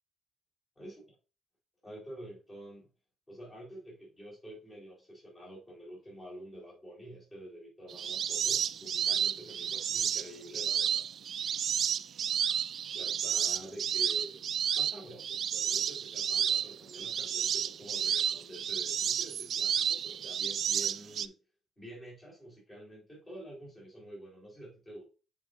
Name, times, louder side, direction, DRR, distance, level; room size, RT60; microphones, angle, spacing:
voice 1, 1.8-2.9 3.3-11.1 12.9-14.5 14.7-21.3 21.8-25.0, right 1 dB, 25° left, -4 dB, 4.0 m, -48 dB
sound 1, 7.9-21.3, right 8 dB, 60° right, 0.3 m, -31 dB
9.0 x 4.9 x 2.7 m, 0.33 s
cardioid pair, 90°, 0 cm